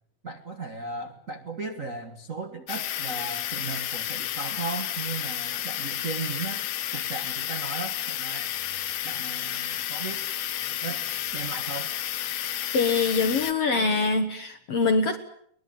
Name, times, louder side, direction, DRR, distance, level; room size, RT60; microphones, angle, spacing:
voice 1, 0.2-8.5 9.0-10.2 10.7-11.1 11.3-11.9, right 3 dB, 55° right, 5 dB, 0.8 m, -36 dB
sound 1, 2.7-13.5, left 11 dB, 90° left, 3.4 m, -31 dB
voice 2, 12.7-15.2, left 4 dB, 55° left, 7 dB, 1.7 m, -24 dB
23.0 x 20.5 x 8.8 m, 0.66 s
omnidirectional pair, 4.4 m